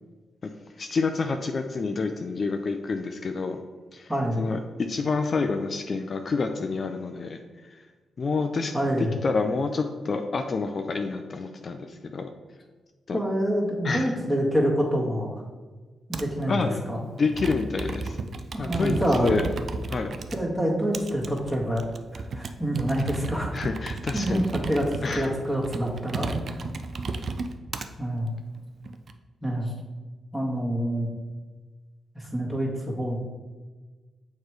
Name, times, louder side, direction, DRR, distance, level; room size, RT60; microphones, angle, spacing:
voice 1, 0.4-3.6 3.9-4.1 4.4-7.8 8.2-12.3 13.1-13.2 13.8-14.2 16.5-18.2 18.6-19.5 19.9-20.2 23.0-23.1 23.5-24.5 25.0-25.3, left 4 dB, 50° left, 6 dB, 0.4 m, -28 dB
voice 2, 4.1-4.5 8.7-9.1 13.1-15.4 16.1-16.6 16.9-17.0 18.5-19.3 20.3-21.8 22.1-23.5 24.1-24.4 24.7-26.7 28.0-28.3 29.4-29.7 30.3-31.1 32.1-33.2, equal, ahead, -3 dB, 1.7 m, -26 dB
Computer keyboard, 16.1-16.4 17.2-20.4 20.9-27.9 28.6-29.1, right 3 dB, 60° right, 0.4 m, -34 dB
6.4 x 3.1 x 4.7 m, 1.3 s
cardioid pair, 60°, 0 cm